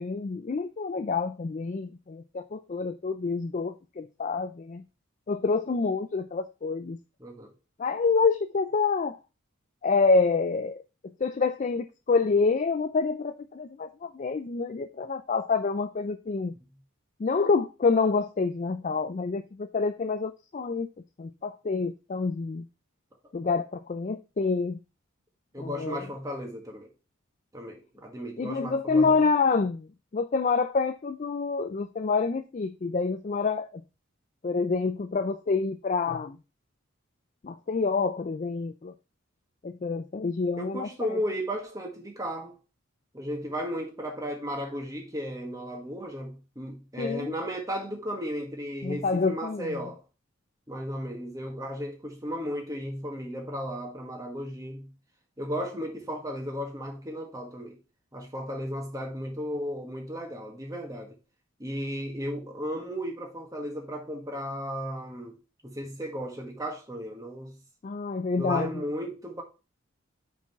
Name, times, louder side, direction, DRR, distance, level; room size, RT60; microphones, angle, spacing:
voice 1, 0.0-4.8 5.3-7.0 7.8-9.2 9.8-10.8 11.2-16.5 17.2-20.9 21.2-22.7 23.3-24.8 25.6-26.0 28.4-33.8 34.4-36.4 37.4-38.9 39.6-41.2 47.0-47.3 48.8-49.8 67.8-68.7, left 4 dB, 35° left, 0.4 m, -27 dB
voice 2, 7.2-7.5 25.5-26.9 27.5-29.2 40.6-42.6 43.1-50.0 50.7-54.9 55.4-57.8 58.1-61.2 61.6-65.4 65.6-67.6 68.3-69.4, equal, 15° right, 1.5 m, -35 dB
5.6 x 4.9 x 4.6 m
head